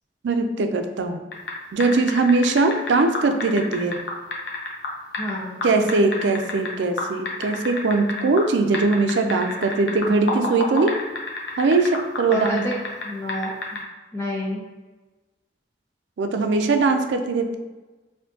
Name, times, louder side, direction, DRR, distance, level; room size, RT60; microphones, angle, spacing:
voice 1, 0.2-1.2 1.7-4.0 5.6-10.9 11.6-12.7 16.2-17.6, right 3 dB, 75° right, 7 dB, 0.4 m, -21 dB
sound 1, 1.3-1.5 1.8-5.3 5.6-6.7 7.0-8.5 8.7-13.0 13.3-13.8, left 3 dB, 70° left, 0.7 m, -28 dB
voice 2, 5.2-5.7 12.3-13.6 14.1-14.6, equal, 15° left, -4 dB, 0.4 m, -29 dB
4.3 x 2.7 x 2.7 m, 1.2 s
head